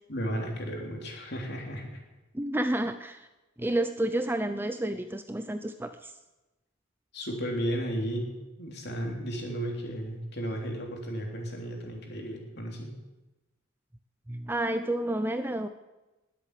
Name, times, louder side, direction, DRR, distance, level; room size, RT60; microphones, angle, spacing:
voice 1, 0.1-2.0 7.1-8.3 8.6-13.0, equal, 50° left, 1 dB, 3.3 m, -34 dB
voice 2, 2.3-3.3 3.6-6.1 14.3-15.7, right 1 dB, 10° right, 9 dB, 0.5 m, -30 dB
20.5 x 8.2 x 8.4 m, 1.1 s
head